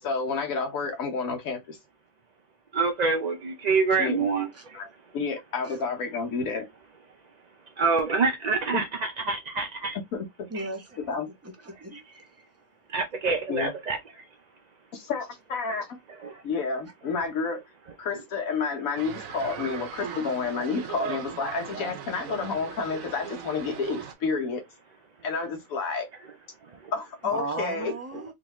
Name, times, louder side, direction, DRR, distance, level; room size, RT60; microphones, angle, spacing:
voice 1, 0.0-1.8 4.0-4.2 4.7-4.9 5.1-6.7 8.7-8.8 10.1-10.5 11.1-11.3 13.5-13.7 14.9-16.0 16.4-17.6 18.0-24.6 25.2-26.1 26.9-27.9, left 4 dB, 90° left, 1.3 m, -30 dB
voice 2, 2.7-4.8 7.8-10.0 10.5-10.7 12.9-14.0 16.2-16.4 26.8-26.9, right 4 dB, 50° right, 0.5 m, -26 dB
voice 3, 10.5-10.8 11.4-12.0 20.0-20.2 27.2-28.3, right 2 dB, 15° right, 0.8 m, -35 dB
sound 1, 19.0-24.1, right 7 dB, 80° right, 1.1 m, -38 dB
3.6 x 3.1 x 2.9 m
omnidirectional pair, 1.4 m